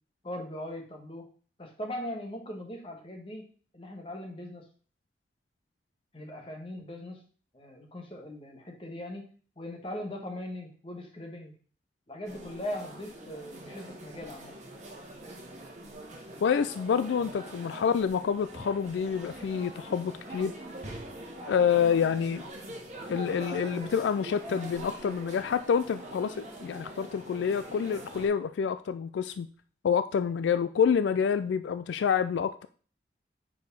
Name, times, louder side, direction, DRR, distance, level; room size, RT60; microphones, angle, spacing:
voice 1, 0.2-1.3 1.6-3.5 3.7-4.6 6.1-7.2 7.5-9.3 9.6-11.5 12.1-14.5, left 1 dB, 30° left, 2 dB, 1.3 m, -40 dB
sound 1, 12.2-28.3, right 1 dB, 40° right, 1.4 m, -43 dB
voice 2, 16.4-20.5 21.5-22.4 23.1-29.5 29.8-32.7, left 7 dB, 85° left, 12 dB, 0.3 m, -27 dB
4.9 x 4.8 x 5.2 m, 0.42 s
head